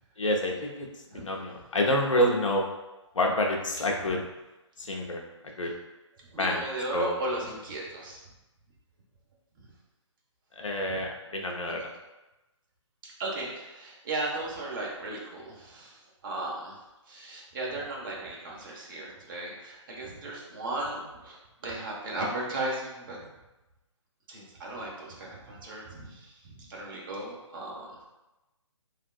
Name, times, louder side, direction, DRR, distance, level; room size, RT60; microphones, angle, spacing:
voice 1, 0.2-2.7 3.1-4.2 4.8-5.7 6.4-6.6 6.9-7.1 10.6-11.9, left 1 dB, 85° left, 1 dB, 0.6 m, -28 dB
voice 2, 6.2-8.3 9.6-9.7 10.9-11.0 13.0-16.8 17.1-23.3 24.3-28.0, right 2 dB, 40° right, -3 dB, 0.8 m, -36 dB
3.3 x 2.4 x 2.3 m, 1.0 s
figure-of-eight pair, 145°, 16 cm